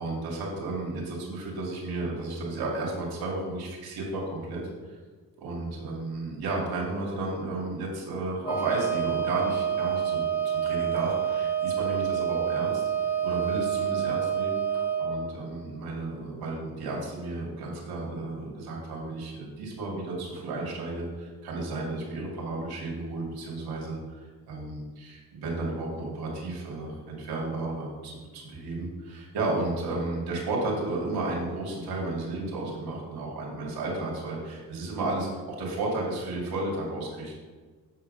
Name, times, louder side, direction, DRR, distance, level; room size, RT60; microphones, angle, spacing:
voice 1, 0.0-5.0 5.4-37.3, right 2 dB, 85° right, -2 dB, 2.4 m, -33 dB
Wind instrument woodwind instrument, 8.4-15.2, right 8 dB, 35° left, 2.5 m, -28 dB
8.3 x 4.9 x 5.3 m, 1.4 s
supercardioid pair, 60°, 37 cm